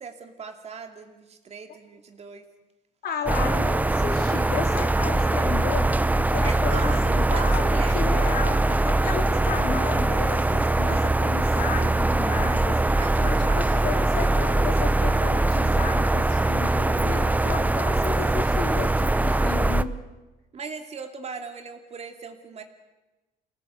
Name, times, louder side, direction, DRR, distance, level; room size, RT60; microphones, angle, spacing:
voice 1, 0.0-2.5 6.4-8.0 12.8-14.0 20.5-22.6, right 5 dB, 40° right, 6 dB, 2.6 m, -38 dB
voice 2, 3.0-12.8 13.2-19.9, left 6 dB, 65° left, 3 dB, 3.9 m, -33 dB
sound 1, 3.3-19.8, right 2 dB, 10° right, 0.8 m, -22 dB
24.0 x 18.0 x 8.2 m, 1.1 s
cardioid pair, 110°, 17 cm